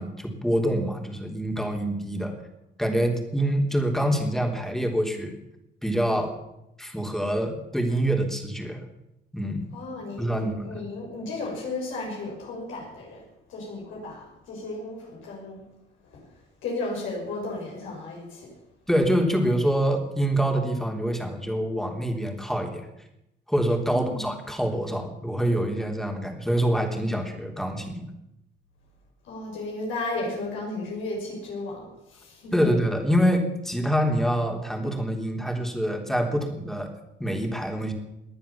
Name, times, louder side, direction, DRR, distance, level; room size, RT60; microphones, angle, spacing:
voice 1, 0.0-2.3 2.8-5.4 5.8-6.3 6.8-8.8 9.3-9.6 10.2-10.8 18.9-22.9 23.5-28.1 32.5-36.9 37.2-37.9, equal, ahead, 3 dB, 3.4 m, -25 dB
voice 2, 9.7-13.2 13.5-15.6 16.1-16.2 16.6-18.5 23.9-24.3 29.2-32.7, left 2 dB, 80° left, -2 dB, 6.2 m, -34 dB
19.5 x 10.0 x 7.2 m, 0.88 s
cardioid pair, 90°, 20 cm